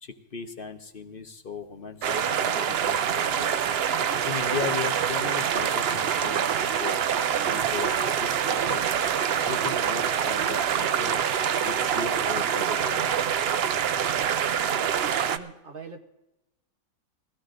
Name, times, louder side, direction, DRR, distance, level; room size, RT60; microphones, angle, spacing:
voice 1, 0.0-3.6 4.0-7.0 7.4-9.0 9.3-11.2 11.6-13.1, left 5 dB, 45° left, 5 dB, 0.9 m, -37 dB
sound 1, 2.0-15.4, right 8 dB, 65° right, 0.6 m, -25 dB
voice 2, 15.3-16.0, right 5 dB, 40° right, 4 dB, 1.0 m, -42 dB
21.5 x 16.5 x 2.5 m, 0.97 s
omnidirectional pair, 1.6 m